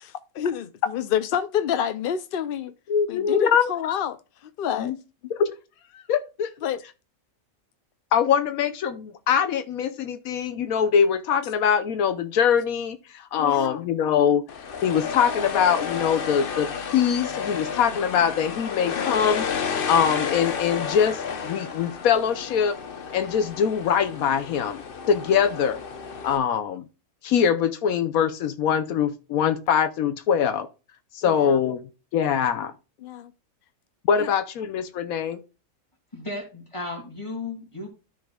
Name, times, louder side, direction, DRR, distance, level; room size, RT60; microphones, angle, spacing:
voice 1, 0.0-2.7 3.1-4.9 5.2-5.3 6.6-6.8 13.4-13.8 18.2-18.3 18.9-19.1 31.2-31.6 33.0-33.3 34.2-34.3, left 9 dB, 65° left, 0.5 m, -28 dB
voice 2, 2.9-3.7 4.8-4.9 5.3-5.5 5.9-6.5 8.1-14.4 14.8-19.5 19.9-22.8 23.1-24.8 25.1-25.8 26.2-26.8 27.2-30.7 31.1-31.8 32.1-32.7 34.1-35.4, left 7 dB, 80° left, 1.2 m, -23 dB
sound 1, 14.5-26.4, left 6 dB, 45° left, 0.9 m, -31 dB
voice 3, 36.1-37.9, left 2 dB, 20° left, 2.6 m, -34 dB
13.5 x 5.1 x 2.3 m
omnidirectional pair, 1.5 m